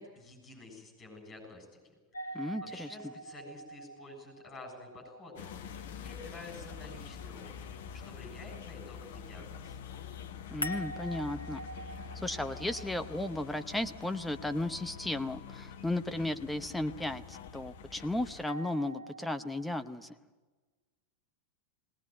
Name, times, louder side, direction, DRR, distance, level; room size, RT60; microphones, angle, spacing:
voice 1, 0.0-7.4 7.9-9.8, left 2 dB, 20° left, 2 dB, 7.2 m, -50 dB
sound 1, 2.1-7.1 10.6-14.7 18.5-19.7, right 1 dB, 80° left, 1.1 m, -45 dB
voice 2, 2.3-2.9 10.5-11.6 12.1-20.1, left 1 dB, 5° left, 8 dB, 0.9 m, -35 dB
sound 2, 5.4-18.5, left 7 dB, 55° left, 1.0 m, -46 dB
20.0 x 19.0 x 9.1 m, 1.3 s
figure-of-eight pair, 90°, 0 cm